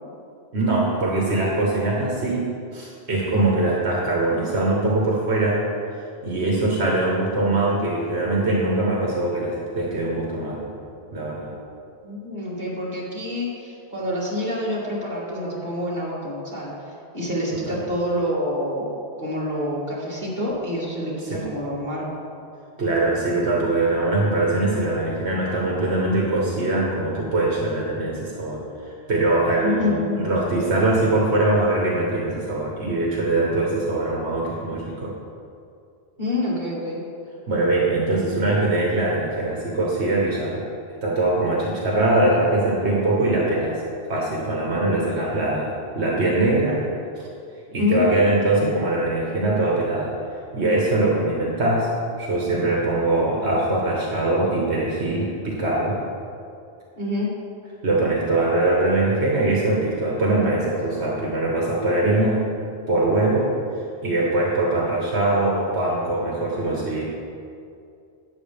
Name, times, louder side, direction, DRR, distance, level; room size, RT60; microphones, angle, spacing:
voice 1, 0.5-5.7 6.2-10.7 11.1-11.5 17.6-17.8 21.3-21.5 22.8-35.1 37.5-40.6 41.0-43.8 44.1-46.8 47.2-47.3 47.7-50.2 50.5-51.9 52.2-56.0 57.8-62.5 62.9-63.5 64.0-67.0, right 2 dB, 80° right, -4 dB, 1.7 m, -22 dB
voice 2, 12.0-18.9 19.2-22.2 29.6-30.2 36.2-37.0 45.1-45.3 47.8-48.1 57.0-57.3, left 1 dB, 45° right, -7 dB, 2.7 m, -27 dB
12.5 x 9.5 x 3.4 m, 2.4 s
omnidirectional pair, 1.1 m